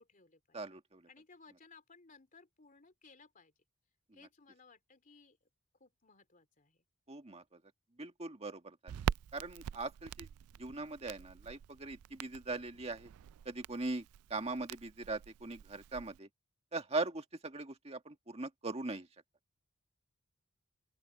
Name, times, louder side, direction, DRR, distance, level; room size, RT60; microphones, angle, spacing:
voice 1, 0.0-0.6 1.1-3.5 4.1-5.4 5.8-6.8, left 4 dB, 35° left, 3.3 m, -61 dB
voice 2, 0.5-1.1 7.1-7.6 8.0-9.0 9.3-10.3 10.6-13.1 13.5-14.1 14.3-16.3 16.7-19.1, right 3 dB, 30° right, 1.8 m, -40 dB
Crackle, 8.9-16.2, right 8 dB, 75° right, 0.3 m, -44 dB
open air
head